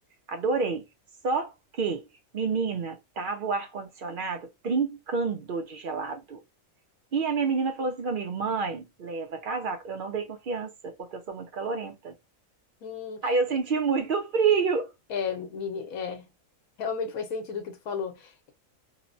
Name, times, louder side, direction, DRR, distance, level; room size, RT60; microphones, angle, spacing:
voice 1, 0.3-0.8 1.2-2.1 2.3-6.4 7.1-12.1 13.2-14.9, right 5 dB, 60° right, 0.5 m, -29 dB
voice 2, 12.8-13.6 15.1-16.3 16.8-18.5, left 6 dB, 85° left, 1.1 m, -34 dB
2.9 x 2.1 x 2.5 m
omnidirectional pair, 1.4 m